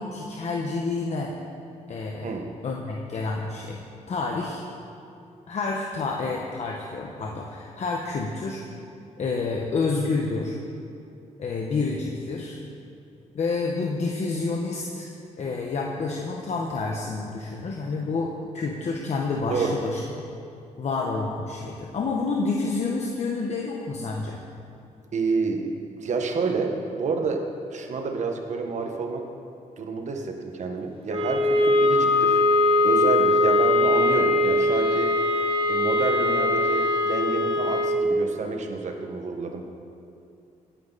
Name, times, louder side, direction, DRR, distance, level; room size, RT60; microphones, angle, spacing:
voice 1, 0.0-1.3 1.9-2.3 2.6-3.8 4.1-4.6 5.5-8.6 9.2-10.6 11.4-12.6 13.3-15.1 15.4-20.0 20.8-24.4, left 3 dB, 55° left, 0 dB, 1.3 m, -29 dB
voice 2, 25.1-29.3 29.8-32.4 32.8-35.1 35.7-39.6, right 4 dB, 60° right, 3 dB, 1.7 m, -29 dB
sound 1, 31.1-38.1, left 2 dB, 45° right, 1.8 m, -21 dB
17.5 x 10.5 x 4.2 m, 2.6 s
cardioid pair, 75°, 13 cm